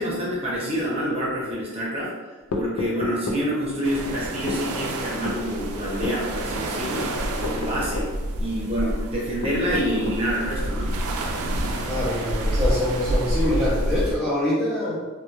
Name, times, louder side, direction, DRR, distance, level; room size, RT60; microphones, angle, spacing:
voice 1, 0.0-2.1 2.5-8.1 8.4-10.9, equal, 25° right, -6 dB, 0.7 m, -27 dB
sound 1, 2.5-3.5 4.5-4.7 5.3-5.4 6.0-6.2 7.4-8.2 9.4-10.3, left 2 dB, 75° left, 0.4 m, -30 dB
sound 2, 3.8-14.2, right 1 dB, 80° right, 0.3 m, -28 dB
voice 2, 11.9-15.0, left 1 dB, ahead, -11 dB, 0.3 m, -25 dB
2.1 x 2.1 x 2.9 m, 1.3 s
head